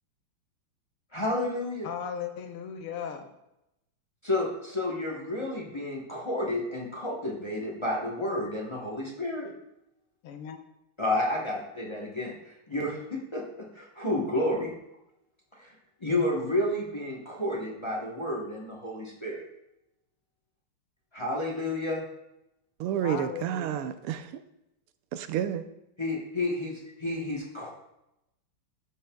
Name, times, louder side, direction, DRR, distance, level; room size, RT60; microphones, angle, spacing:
voice 1, 1.1-1.9 4.2-9.5 11.0-14.7 15.6-15.7 16.0-19.4 21.1-22.0 26.0-27.7, left 1 dB, 30° left, -2 dB, 0.5 m, -31 dB
voice 2, 1.8-3.3 10.2-10.6 23.0-23.7, left 7 dB, 80° left, 6 dB, 1.7 m, -36 dB
voice 3, 22.8-24.4 25.1-25.6, right 10 dB, 85° right, 10 dB, 1.5 m, -30 dB
13.0 x 6.3 x 2.3 m, 0.88 s
omnidirectional pair, 2.4 m